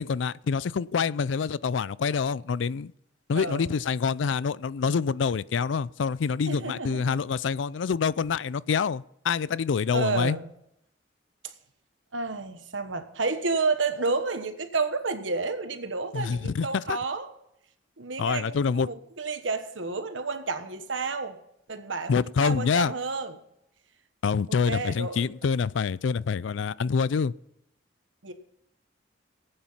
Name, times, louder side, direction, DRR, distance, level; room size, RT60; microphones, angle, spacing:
voice 1, 0.0-2.9 3.3-10.4 16.1-17.0 18.2-18.9 22.1-22.9 24.2-27.3, left 5 dB, 75° left, 0.4 m, -26 dB
voice 2, 3.3-3.7 6.5-7.2 9.9-10.5 11.4-11.5 12.1-17.3 18.0-21.4 21.7-23.4 24.7-25.2 28.2-28.3, right 4 dB, 90° right, 1.3 m, -30 dB
19.0 x 8.7 x 5.7 m
head